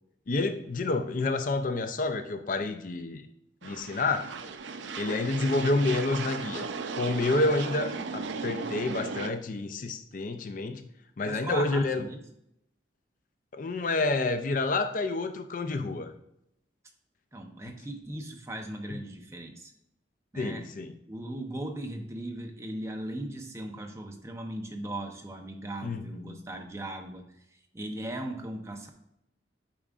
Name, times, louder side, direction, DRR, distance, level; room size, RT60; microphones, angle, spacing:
voice 1, 0.3-3.2 3.6-4.3 5.0-6.7 6.9-10.8 11.2-12.0 13.5-16.1 20.4-20.9 25.8-26.4, left 2 dB, 45° left, 8 dB, 0.4 m, -29 dB
sound 1, 3.6-9.3, right 4 dB, 85° right, 0.5 m, -36 dB
voice 2, 11.2-12.2 17.3-19.7 20.3-20.6 21.1-27.3 27.7-28.9, right 1 dB, 15° right, 3 dB, 0.7 m, -38 dB
8.7 x 4.8 x 2.4 m, 0.78 s
head